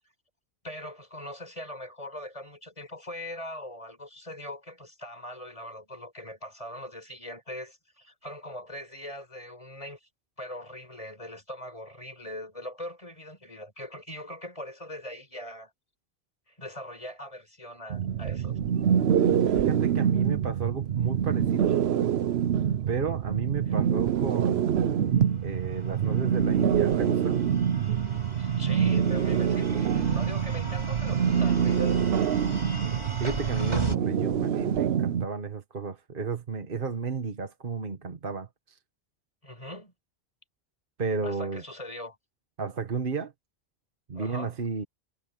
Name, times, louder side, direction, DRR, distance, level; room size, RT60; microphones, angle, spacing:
voice 1, 0.6-10.1 10.4-15.7 16.5-18.6 23.7-23.8 28.4-32.0 39.4-39.9 41.2-42.2 44.1-44.6, left 1 dB, 35° left, 4.8 m, -41 dB
sound 1, 17.9-35.2, right 8 dB, 85° right, 1.0 m, -25 dB
voice 2, 19.5-21.7 22.9-24.8 25.4-27.4 33.2-38.5 41.0-41.6 42.6-43.3 44.1-44.9, right 5 dB, 55° right, 1.5 m, -32 dB
sound 2, 25.1-34.0, right 1 dB, 25° right, 4.4 m, -39 dB
omnidirectional pair, 1.0 m